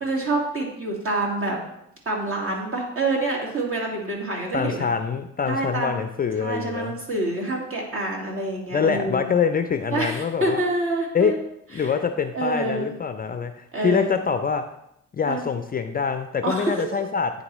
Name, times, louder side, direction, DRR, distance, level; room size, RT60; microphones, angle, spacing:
voice 1, 0.0-1.6 2.1-4.9 5.5-6.0 6.4-9.3 9.9-11.4 11.8-11.9 12.3-12.9 13.7-14.1 15.3-15.5 16.4-16.8, right 2 dB, 45° right, -1 dB, 2.0 m, -27 dB
voice 2, 4.5-7.0 8.7-10.6 11.1-11.3 11.7-14.6 15.1-17.3, left 6 dB, 30° left, 8 dB, 0.4 m, -25 dB
9.3 x 4.0 x 3.0 m, 0.78 s
cardioid pair, 90°, 30 cm